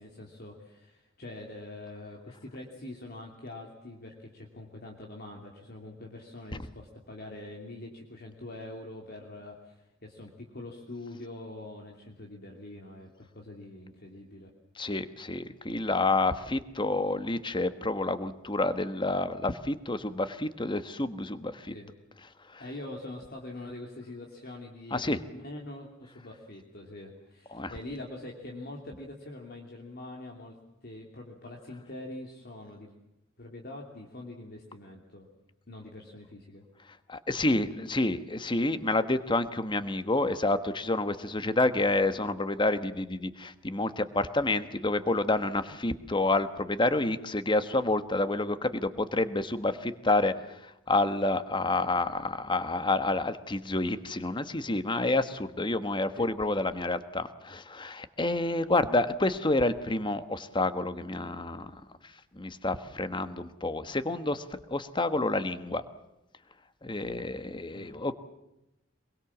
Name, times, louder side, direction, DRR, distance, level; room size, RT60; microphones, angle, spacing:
voice 1, 0.0-14.5 21.7-21.9 22.6-32.9 33.4-35.3 35.7-36.6 41.4-41.7 56.1-56.3 67.7-68.0, left 2 dB, 50° left, 0 dB, 2.9 m, -44 dB
voice 2, 14.8-21.7 22.4-22.6 24.9-25.2 27.5-27.7 37.1-65.8 66.8-68.1, left 2 dB, 25° left, 11 dB, 1.3 m, -29 dB
24.0 x 22.5 x 7.3 m, 0.89 s
head